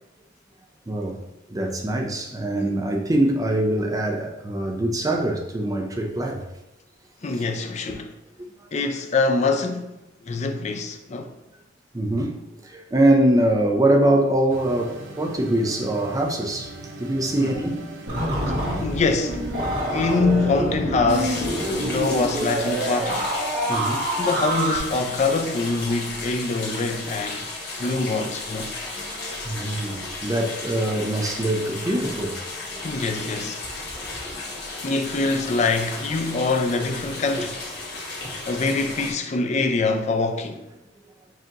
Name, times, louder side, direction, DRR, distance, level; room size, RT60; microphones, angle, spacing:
voice 1, 0.9-1.2 1.5-6.5 11.9-17.9 23.7-24.1 29.0-32.4 32.7-33.1 33.9-34.5 38.2-38.3, right 1 dB, 20° right, 0.5 m, -23 dB
voice 2, 7.2-8.2 8.7-10.0 10.2-11.3 17.4-17.6 18.8-19.5 19.9-23.3 24.2-27.5 27.8-28.7 32.8-33.6 34.8-37.6 38.5-40.6, left 3 dB, 35° left, 0.4 m, -24 dB
sound 1, 14.5-20.2, right 2 dB, 85° right, 0.5 m, -40 dB
sound 2, 18.1-24.8, right 1 dB, 55° right, 1.4 m, -26 dB
sound 3, 21.1-39.1, left 3 dB, 55° left, 1.3 m, -34 dB
7.5 x 2.8 x 2.5 m
head